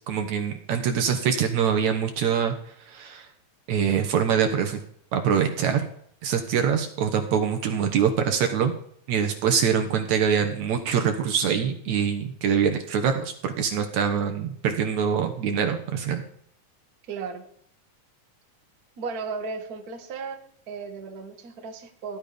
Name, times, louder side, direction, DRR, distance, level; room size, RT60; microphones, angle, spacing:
voice 1, 0.1-2.5 2.9-3.3 3.7-4.8 5.1-5.9 6.2-8.7 9.1-16.2, right 7 dB, 65° right, 6 dB, 2.3 m, -24 dB
voice 2, 17.1-17.4 19.0-22.2, right 5 dB, 35° right, 4 dB, 1.6 m, -35 dB
16.0 x 11.0 x 5.1 m, 0.66 s
omnidirectional pair, 3.7 m